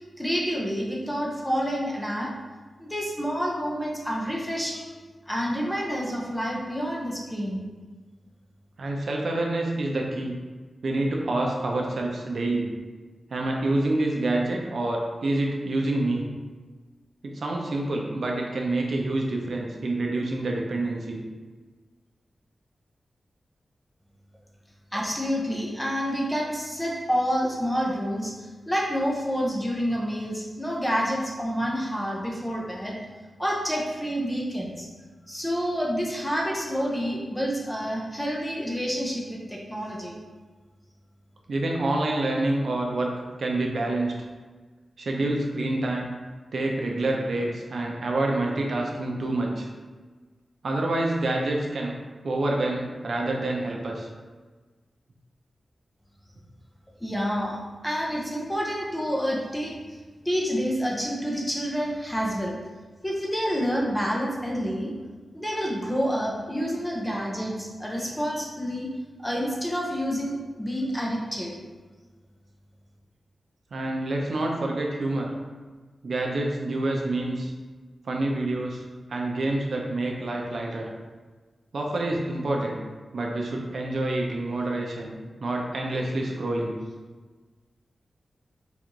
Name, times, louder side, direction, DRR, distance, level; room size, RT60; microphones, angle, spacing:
voice 1, 0.0-2.3 2.8-4.9 5.3-7.6 24.9-33.0 33.4-34.9 35.3-40.1 57.0-60.0 60.2-62.6 63.0-64.9 65.3-68.9 69.2-71.5, equal, 10° left, -2 dB, 0.6 m, -28 dB
voice 2, 8.8-10.4 10.8-12.7 13.3-16.2 17.2-21.2 41.5-44.1 45.0-46.1 46.5-49.7 50.6-51.9 52.2-54.1 73.7-75.3 76.0-77.5 78.1-78.8 79.1-80.9 81.7-82.8 83.1-86.8, right 2 dB, 60° right, 0 dB, 0.6 m, -27 dB
4.0 x 2.5 x 4.6 m, 1.4 s
wide cardioid pair, 175°, 0 cm